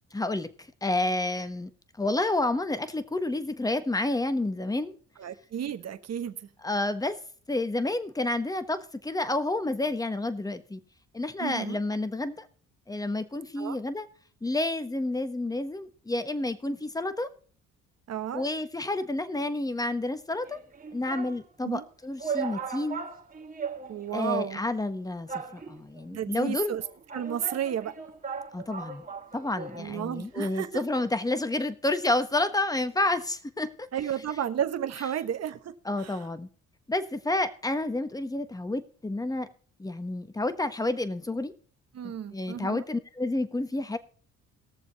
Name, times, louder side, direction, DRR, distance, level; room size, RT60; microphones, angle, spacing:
voice 1, 0.1-1.7 2.0-4.9 6.6-7.2 7.5-10.8 11.1-12.5 12.9-14.1 14.4-17.3 18.3-20.6 20.9-23.0 24.1-26.8 28.5-29.0 29.3-33.9 35.8-36.5 36.9-39.5 39.8-41.5 42.0-44.0, left 2 dB, 10° left, 1.2 m, -30 dB
voice 2, 5.2-6.5 11.4-11.8 13.6-13.8 18.1-18.5 21.6-21.8 23.9-24.6 26.1-26.8 27.1-27.9 29.8-30.8 33.9-36.2 41.9-42.8, right 9 dB, 60° right, 1.2 m, -33 dB
sound 1, 20.4-21.4 21.9-22.0 22.2-24.3 24.5-24.6 25.3-26.0 26.8-29.9 30.2-30.3, right 6 dB, 30° right, 2.0 m, -38 dB
19.5 x 6.9 x 4.1 m
cardioid pair, 90°, 30 cm